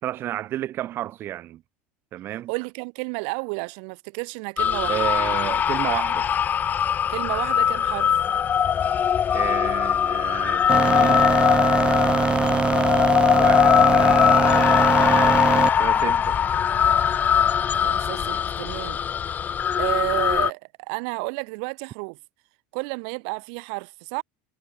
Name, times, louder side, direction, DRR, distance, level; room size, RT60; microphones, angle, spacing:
voice 1, 0.0-1.6 2.1-2.5 4.9-6.3 9.3-11.3 13.3-16.4, right 13 dB, 45° right, 3.7 m, -32 dB
voice 2, 2.5-5.0 7.1-8.1 17.8-19.0 19.8-20.6 20.9-22.2 22.7-24.2, right 40 dB or more, 70° right, 5.5 m, -31 dB
sound 1, 4.6-20.5, left 8 dB, 35° left, 3.2 m, -21 dB
sound 2, 10.7-15.7, right 5 dB, 20° right, 1.5 m, -22 dB
supercardioid pair, 115°, 5 cm